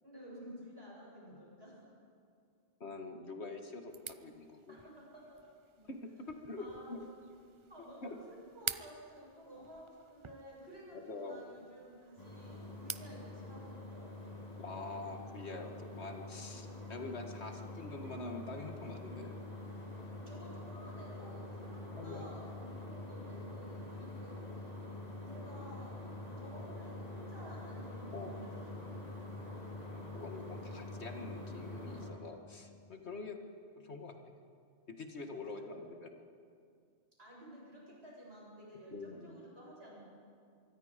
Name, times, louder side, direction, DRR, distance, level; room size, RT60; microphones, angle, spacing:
voice 1, 0.0-1.8 4.7-5.4 6.6-7.0 7.7-14.1 20.3-24.4 25.2-28.9 37.2-40.1, equal, 75° right, -5 dB, 8.2 m, -53 dB
voice 2, 2.8-4.8 5.8-6.0 6.3-7.1 8.0-8.2 11.1-11.4 14.6-19.3 21.9-22.3 28.1-28.4 29.7-33.4 33.8-34.1 34.9-36.1 38.9-39.4, left 3 dB, 85° left, 4 dB, 2.1 m, -45 dB
sound 1, 3.9-13.2, right 6 dB, 40° right, 0.4 m, -48 dB
sound 2, 12.2-32.1, left 2 dB, 35° left, 4.4 m, -46 dB
25.5 x 23.0 x 5.2 m, 2.3 s
omnidirectional pair, 1.1 m